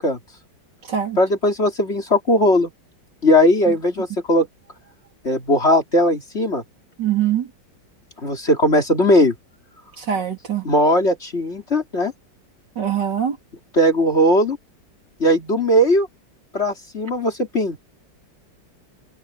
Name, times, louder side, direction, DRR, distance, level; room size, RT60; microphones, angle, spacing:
voice 1, 1.2-2.7 3.2-4.5 5.2-6.6 8.2-9.3 10.6-12.1 13.7-14.6 15.2-16.1 16.5-17.8, left 1 dB, 35° left, 3.2 m, -18 dB
voice 2, 7.0-7.4 10.1-10.6 12.8-13.4, right 9 dB, 65° right, 3.6 m, -22 dB
omnidirectional pair, 2.0 m